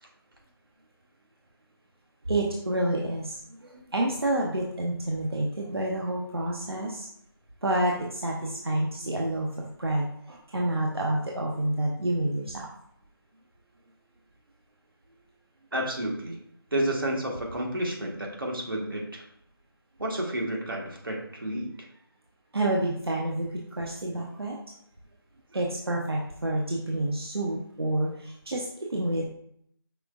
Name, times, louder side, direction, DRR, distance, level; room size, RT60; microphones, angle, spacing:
voice 1, 2.3-7.1 7.6-12.7 22.5-24.6 25.5-29.2, right 1 dB, 80° right, -2 dB, 1.0 m, -29 dB
voice 2, 15.7-16.4 16.7-19.2 20.0-21.9, right 1 dB, 60° right, -1 dB, 1.6 m, -31 dB
5.8 x 3.5 x 2.5 m, 0.70 s
figure-of-eight pair, 180°, 13 cm